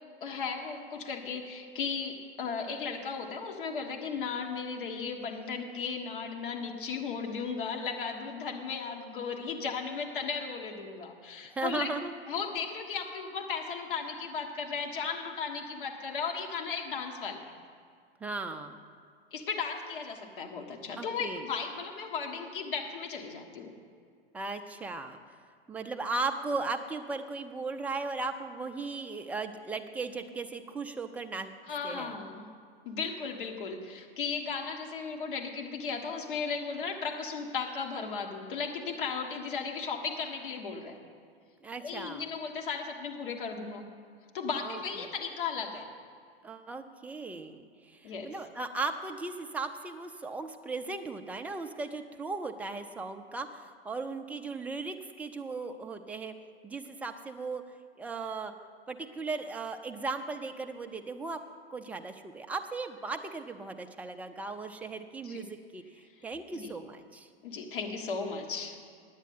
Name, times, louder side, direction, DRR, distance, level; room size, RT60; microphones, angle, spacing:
voice 1, 0.2-11.9 12.3-17.5 19.3-23.7 31.6-32.4 32.8-41.0 41.8-43.8 44.3-45.9 48.0-48.3 65.2-65.4 66.5-66.8 67.4-68.8, left 5 dB, 55° left, 1 dB, 1.5 m, -36 dB
voice 2, 11.5-12.1 18.2-18.8 21.0-21.4 24.3-25.2 25.7-31.5 31.8-32.2 41.6-42.2 44.6-45.1 46.4-56.3 56.6-57.6 58.0-58.5 58.9-61.4 61.7-67.3, right 3 dB, 5° right, 6 dB, 0.4 m, -37 dB
9.6 x 9.0 x 7.8 m, 2.1 s
figure-of-eight pair, 95°, 31 cm